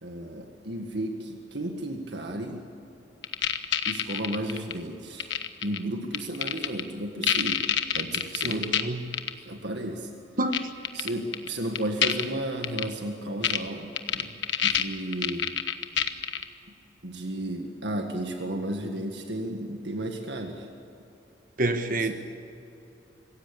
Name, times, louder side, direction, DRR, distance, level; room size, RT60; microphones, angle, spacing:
voice 1, 0.0-2.6 3.9-5.3 5.6-7.7 7.9-8.7 9.5-10.1 10.9-14.4 14.6-15.5 17.0-20.7, right 1 dB, 75° right, 1.8 m, -33 dB
sound 1, 3.2-4.7 5.2-5.8 6.1-6.8 7.2-8.8 9.1-9.3 10.5-10.6 10.8-11.5 11.8-12.2 12.6-12.8 13.4-13.6 14.0-16.4, left 9 dB, 85° left, 1.2 m, -26 dB
voice 2, 8.4-9.1 10.4-10.7 21.6-22.1, right 2 dB, 50° right, 1.2 m, -28 dB
25.5 x 16.0 x 8.6 m
head